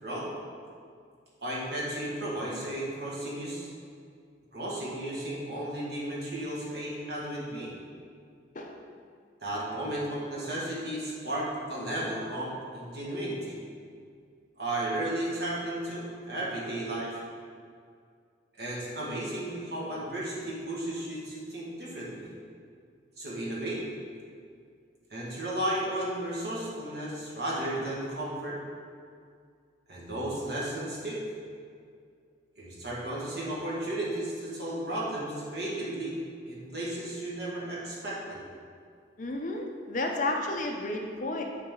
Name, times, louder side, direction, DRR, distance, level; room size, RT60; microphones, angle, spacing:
voice 1, 1.4-3.7 4.5-7.7 9.4-13.6 14.6-17.2 18.6-22.3 23.2-23.8 25.1-28.6 29.9-31.2 32.6-36.2 36.5-38.4, right 1 dB, 60° right, -5 dB, 1.7 m, -34 dB
voice 2, 39.2-41.4, left 2 dB, 45° left, 2 dB, 0.6 m, -32 dB
9.0 x 4.1 x 3.7 m, 2.2 s
head